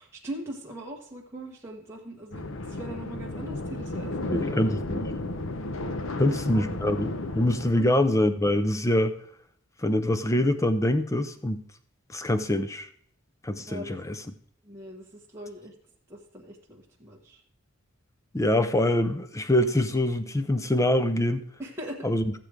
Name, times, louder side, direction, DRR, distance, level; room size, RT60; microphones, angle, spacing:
voice 1, 0.0-4.5 5.1-5.2 6.1-6.6 7.7-7.9 13.7-14.0 14.6-15.7 16.1-17.4 21.6-22.1, right 1 dB, 10° right, -3 dB, 1.2 m, -41 dB
sound 1, 2.3-7.7, left 2 dB, 60° left, 0.8 m, -33 dB
voice 2, 4.3-5.1 6.2-9.1 9.8-11.6 12.1-12.9 13.4-14.2 18.3-21.4 22.0-22.4, left 1 dB, 15° left, 10 dB, 0.5 m, -24 dB
14.0 x 7.5 x 4.9 m, 0.62 s
head